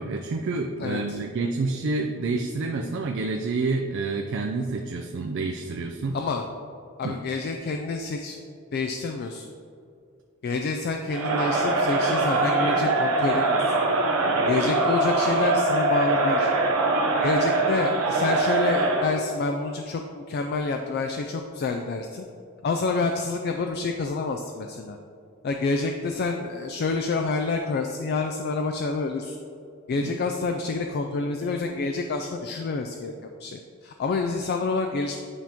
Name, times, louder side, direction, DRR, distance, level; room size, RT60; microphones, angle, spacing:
voice 1, 0.0-6.2 7.0-7.2 30.0-30.1, right 3 dB, 60° right, 2 dB, 0.4 m, -28 dB
voice 2, 0.8-1.2 6.1-6.5 7.0-8.4 8.7-9.5 10.4-13.6 14.4-16.5 17.2-22.2 22.6-25.0 25.4-29.4 29.9-35.2, left 3 dB, 50° left, 4 dB, 0.3 m, -28 dB
Crowd, 11.1-19.2, right 2 dB, 85° right, 0.8 m, -23 dB
9.6 x 3.5 x 2.9 m, 2.4 s
head